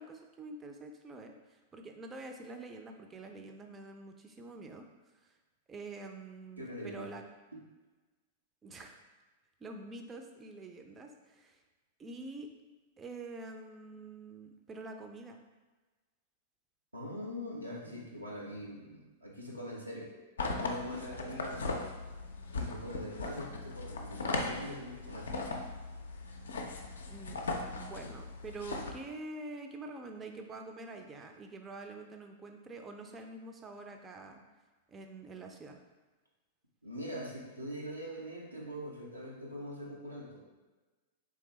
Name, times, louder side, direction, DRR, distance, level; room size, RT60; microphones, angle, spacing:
voice 1, 0.0-4.8 5.2-5.3 5.7-7.2 8.6-9.0 9.6-11.6 12.0-12.5 13.0-15.4 27.1-27.4 27.7-34.4 34.9-35.8, right 2 dB, 20° right, 4 dB, 0.4 m, -46 dB
voice 2, 6.6-7.1 16.9-20.1 20.5-21.8 22.5-25.3 36.8-40.7, equal, 85° right, -4 dB, 0.7 m, -43 dB
sound 1, 20.4-28.9, left 3 dB, 70° left, 0.4 m, -38 dB
3.7 x 3.2 x 3.1 m, 1.2 s
figure-of-eight pair, 95°, 0 cm